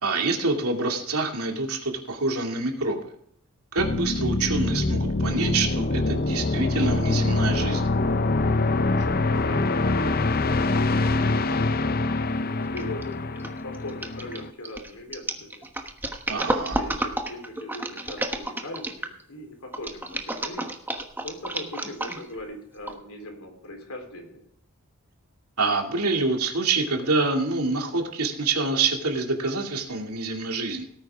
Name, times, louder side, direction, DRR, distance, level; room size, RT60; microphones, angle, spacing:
voice 1, 0.0-3.1 3.7-7.9 16.3-16.8 25.6-30.8, right 3 dB, 90° right, 2 dB, 2.4 m, -26 dB
sound 1, 3.8-14.5, left 2 dB, 45° left, 0.6 m, -24 dB
voice 2, 8.8-11.9 12.4-13.1 13.6-15.7 16.6-20.7 21.2-24.4, left 1 dB, 80° left, 3 dB, 3.7 m, -40 dB
sound 2, 12.8-13.0 13.4-19.2 19.7-22.4 22.9-23.0, right 1 dB, 10° right, 1.2 m, -31 dB
17.5 x 9.5 x 3.6 m, 0.70 s
head